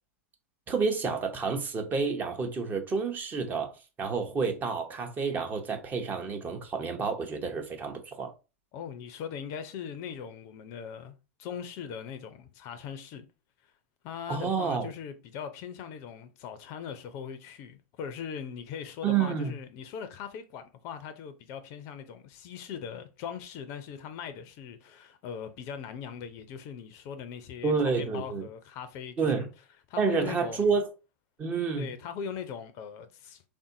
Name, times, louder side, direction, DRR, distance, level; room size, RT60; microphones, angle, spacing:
voice 1, 0.7-8.3 14.3-14.9 19.0-19.5 27.6-28.4 29.2-29.5 30.0-30.9 31.4-31.9, right 5 dB, 25° right, 0.7 m, -29 dB
voice 2, 8.7-13.3 13.6-13.7 14.0-29.5 29.9-30.7 31.8-33.4, left 7 dB, 45° left, 0.5 m, -40 dB
3.5 x 2.6 x 2.6 m
figure-of-eight pair, 90°, 7 cm